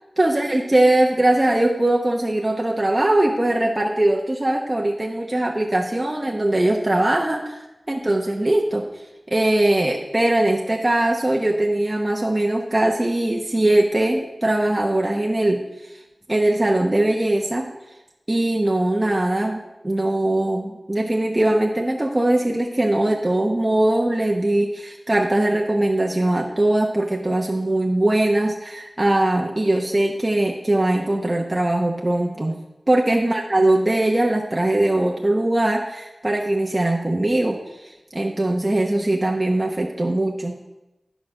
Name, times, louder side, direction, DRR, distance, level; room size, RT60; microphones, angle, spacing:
voice 1, 0.2-8.8 9.3-15.9 16.3-17.7 18.3-19.6 19.8-32.6 32.9-40.6, right 1 dB, 25° right, 0 dB, 0.8 m, -21 dB
11.0 x 5.1 x 6.2 m, 0.99 s
wide cardioid pair, 75°, 0 cm